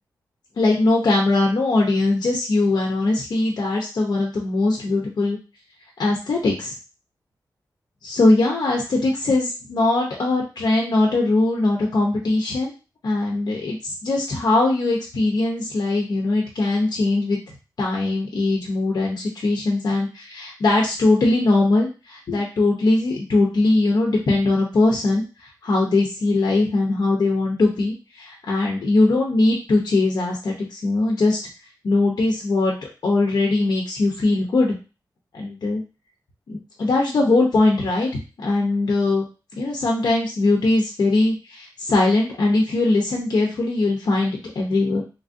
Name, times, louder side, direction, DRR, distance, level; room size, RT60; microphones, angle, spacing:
voice 1, 0.6-5.4 6.0-6.7 8.0-12.7 13.0-17.4 17.8-31.4 31.8-32.7 33.0-34.7 35.3-35.8 36.5-38.1 38.4-39.3 39.6-45.0, left 2 dB, 60° left, -1 dB, 0.7 m, -21 dB
3.2 x 2.4 x 2.5 m, 0.32 s
wide cardioid pair, 110°, 8 cm